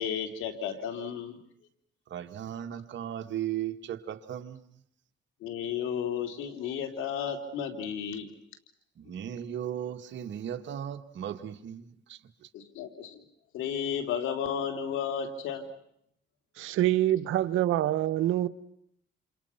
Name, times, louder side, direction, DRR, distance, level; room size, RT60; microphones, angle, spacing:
voice 1, 0.0-1.4 5.4-8.3 12.5-13.2 13.5-15.7, left 8 dB, 90° left, 3.4 m, -33 dB
voice 2, 2.1-4.6 9.0-12.2, right 10 dB, 65° right, 1.9 m, -36 dB
voice 3, 16.6-18.5, right 13 dB, 85° right, 1.1 m, -25 dB
28.5 x 28.0 x 5.9 m
cardioid pair, 90°, 20 cm